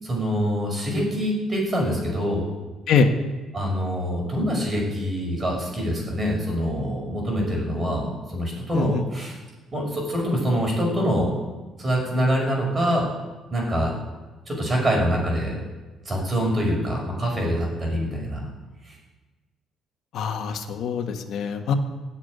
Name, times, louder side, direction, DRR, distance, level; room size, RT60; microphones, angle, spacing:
voice 1, 0.0-2.4 3.5-9.4 9.7-11.3 11.8-13.1 13.5-13.9 14.5-15.6 16.0-18.5 18.8-19.0, equal, 25° right, -1 dB, 6.1 m, -25 dB
voice 2, 20.1-21.7, left 5 dB, 65° left, 4 dB, 1.7 m, -23 dB
17.0 x 7.5 x 9.7 m, 1.2 s
cardioid pair, 135°, 0 cm